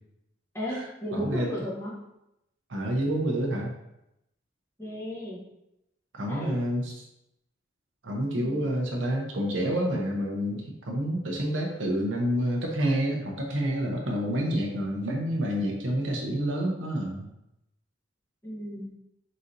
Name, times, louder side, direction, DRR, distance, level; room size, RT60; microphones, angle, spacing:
voice 1, 0.5-2.0 4.8-5.4 6.3-6.6 8.3-8.6 18.4-18.9, equal, 15° left, -5 dB, 1.0 m, -34 dB
voice 2, 1.1-1.5 2.7-3.7 6.1-6.9 8.0-17.3, equal, 80° right, 0 dB, 0.7 m, -28 dB
4.1 x 4.0 x 2.6 m, 0.86 s
head